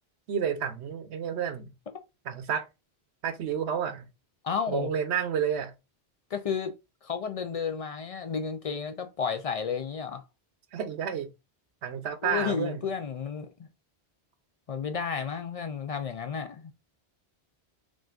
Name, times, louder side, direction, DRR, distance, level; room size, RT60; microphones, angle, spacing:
voice 1, 0.3-1.7 2.2-2.7 3.2-4.1 4.7-5.7 10.7-11.3 11.8-12.8, right 7 dB, 80° right, 1.0 m, -30 dB
voice 2, 4.4-4.9 6.3-6.8 7.0-10.2 12.2-13.5 14.7-16.6, left 6 dB, 60° left, 0.4 m, -32 dB
6.1 x 2.5 x 2.4 m
omnidirectional pair, 1.1 m